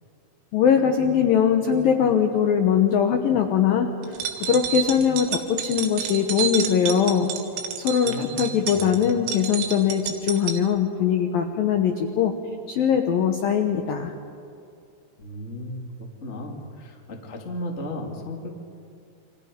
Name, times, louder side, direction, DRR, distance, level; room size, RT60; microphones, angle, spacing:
voice 1, 0.5-3.9 4.4-7.3 7.8-12.3 12.7-14.1, left 8 dB, 85° left, 5 dB, 2.0 m, -21 dB
sound 1, 4.0-10.6, right 8 dB, 85° right, 4.6 m, -30 dB
voice 2, 8.0-9.1 15.2-18.5, left 1 dB, 40° left, 1 dB, 1.0 m, -35 dB
29.5 x 26.5 x 5.3 m, 2.4 s
omnidirectional pair, 5.9 m